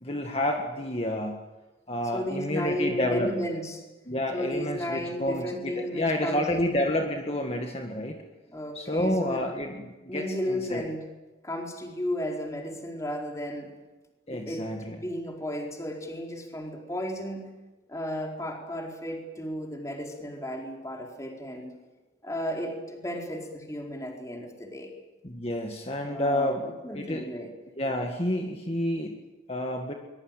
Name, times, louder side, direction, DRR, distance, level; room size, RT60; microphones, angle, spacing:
voice 1, 0.0-1.4 1.9-3.3 4.1-8.2 8.8-10.9 14.3-15.0 25.2-26.7 26.9-27.3 27.8-29.2 29.5-29.9, left 1 dB, 35° left, 3 dB, 1.9 m, -29 dB
voice 2, 2.1-3.8 4.3-6.8 8.5-9.4 10.1-11.0 11.4-13.7 14.3-17.5 17.9-21.7 22.2-24.9 26.1-27.5, equal, 15° left, 1 dB, 4.4 m, -34 dB
23.5 x 22.0 x 9.1 m, 1.1 s
head